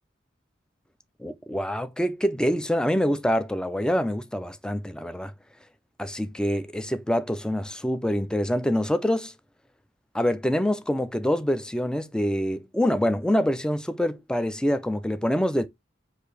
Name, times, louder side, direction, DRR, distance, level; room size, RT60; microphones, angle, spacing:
voice 1, 1.2-5.3 6.0-9.3 10.1-15.7, equal, 5° left, 0.3 m, -25 dB
4.8 x 2.6 x 3.9 m
head